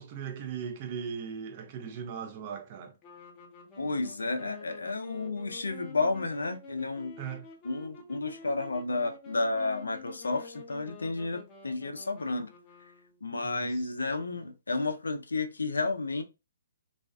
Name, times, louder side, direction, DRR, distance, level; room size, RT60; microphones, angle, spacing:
voice 1, 0.0-2.9 7.2-7.5 13.4-13.9, right 7 dB, 40° right, 0.5 m, -38 dB
sound 1, 3.0-13.4, left 4 dB, 25° left, 0.6 m, -49 dB
voice 2, 3.8-7.2 7.6-12.5 13.2-16.2, left 3 dB, 90° left, 0.4 m, -31 dB
2.4 x 2.2 x 2.4 m
hypercardioid pair, 140°, 0 cm